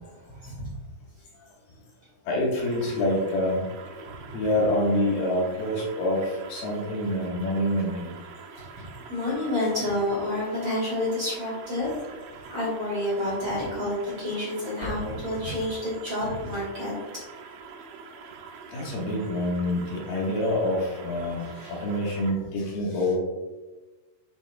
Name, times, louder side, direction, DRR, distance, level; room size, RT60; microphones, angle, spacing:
voice 1, 0.3-0.7 8.7-8.8 9.1-11.9 12.5-16.9, left 1 dB, 40° right, -6 dB, 2.5 m, -29 dB
voice 2, 2.3-3.6 4.3-8.2 9.0-9.5 18.7-23.2, left 1 dB, 75° left, -4 dB, 3.5 m, -27 dB
sound 1, 2.6-22.3, right 5 dB, 75° right, 2.2 m, -45 dB
8.7 x 6.9 x 2.3 m, 1.2 s
omnidirectional pair, 4.7 m